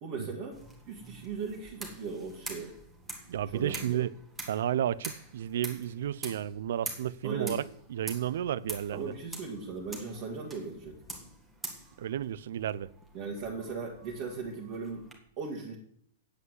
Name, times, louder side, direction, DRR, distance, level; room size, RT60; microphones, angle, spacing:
voice 1, 0.0-0.6 0.9-2.8 3.5-4.0 7.2-7.6 8.9-11.0 13.1-15.1 15.4-15.8, right 4 dB, 35° right, 2.0 m, -38 dB
sound 1, 0.5-15.2, right 2 dB, 5° right, 1.7 m, -46 dB
voice 2, 3.3-4.1 4.5-7.6 7.9-9.1 12.0-12.9, right 10 dB, 65° right, 0.5 m, -32 dB
8.3 x 7.8 x 8.0 m
hypercardioid pair, 165°, 0 cm